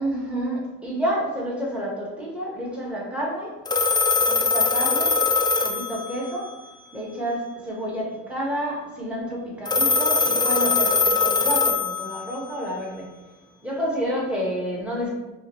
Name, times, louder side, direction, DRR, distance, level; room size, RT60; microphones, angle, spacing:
voice 1, 0.0-3.6 4.3-5.2 5.6-6.5 6.9-13.2 13.6-15.1, equal, 5° right, -5 dB, 1.4 m, -29 dB
Telephone, 3.7-6.5 9.7-12.5, left 4 dB, 15° left, 0.3 m, -22 dB
5.5 x 2.1 x 3.2 m, 1.1 s
cardioid pair, 90°, 30 cm